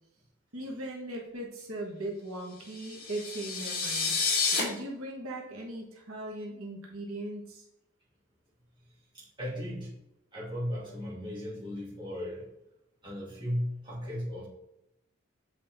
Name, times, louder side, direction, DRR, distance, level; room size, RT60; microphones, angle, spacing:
voice 1, 0.5-4.1 4.5-7.6, right 1 dB, 90° right, -1 dB, 1.3 m, -39 dB
sound 1, 2.7-4.6, left 4 dB, 45° left, 1.9 m, -30 dB
voice 2, 9.1-9.9 10.3-12.4 13.0-14.5, equal, 20° right, -7 dB, 2.3 m, -36 dB
7.6 x 4.2 x 3.5 m, 0.85 s
head